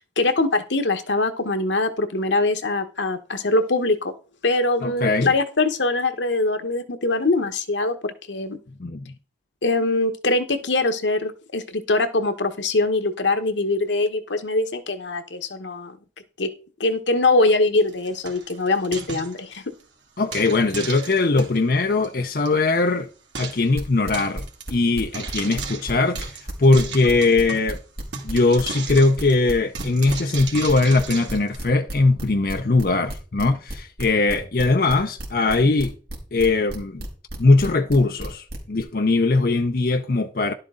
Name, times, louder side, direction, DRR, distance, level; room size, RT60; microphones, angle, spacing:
voice 1, 0.0-4.1 4.4-8.6 9.6-16.0 16.4-16.5 16.8-19.6, left 2 dB, 85° left, 1.2 m, -23 dB
voice 2, 4.8-5.3 8.8-9.0 20.2-23.1 23.4-24.4 24.7-26.3 26.6-27.8 28.2-35.9 36.3-37.0 37.4-40.5, left 3 dB, 50° left, 0.6 m, -20 dB
Frying (food), 17.8-19.8 20.3-21.6 22.0-22.1 22.3-22.5 22.7-22.8 23.3-23.7 24.1-24.6 25.1-27.8 28.1-31.6, right 5 dB, 80° right, 2.4 m, -35 dB
sound 1, 23.7-25.9 26.2-38.8, right 1 dB, 60° right, 3.5 m, -33 dB
11.5 x 7.6 x 3.8 m
head